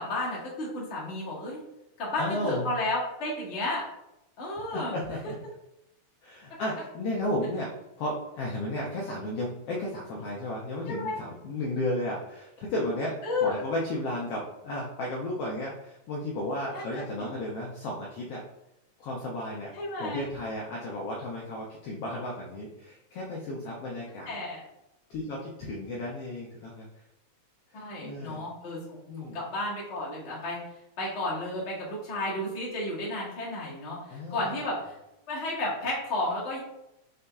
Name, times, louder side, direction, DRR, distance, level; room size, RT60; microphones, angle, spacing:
voice 1, 0.0-1.6 2.0-3.8 4.4-4.9 10.9-11.2 13.2-13.6 16.7-17.3 19.7-20.2 24.2-24.6 27.7-28.8 29.2-30.6 31.0-34.9 35.3-36.6, left 2 dB, 70° left, -6 dB, 0.6 m, -32 dB
voice 2, 2.2-2.7 4.7-5.4 6.2-7.7 8.0-13.1 13.4-18.4 19.0-19.7 20.0-24.3 25.1-26.9 27.7-28.4 29.1-29.4 34.1-34.4, left 1 dB, 90° left, -3 dB, 1.3 m, -33 dB
5.5 x 3.8 x 2.3 m, 0.87 s
omnidirectional pair, 3.7 m